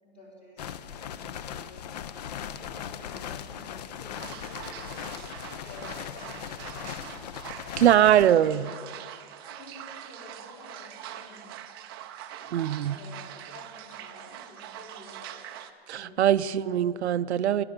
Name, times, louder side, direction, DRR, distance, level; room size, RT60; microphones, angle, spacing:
voice 1, 0.0-0.6 1.0-2.0 2.6-5.1 5.7-7.1 7.6-8.3 9.4-11.5 12.2-12.5 12.9-15.3 15.9-16.4, left 2 dB, 20° left, -4 dB, 3.7 m, -50 dB
sound 1, 0.6-8.3, left 9 dB, 40° left, 0.4 m, -39 dB
sound 2, 4.1-15.7, right 11 dB, 25° right, 0.4 m, -43 dB
voice 2, 7.8-8.7 12.5-13.0 15.9-17.6, right 11 dB, 90° right, 14 dB, 0.5 m, -22 dB
12.5 x 10.5 x 6.6 m, 2.1 s
hypercardioid pair, 145°, 32 cm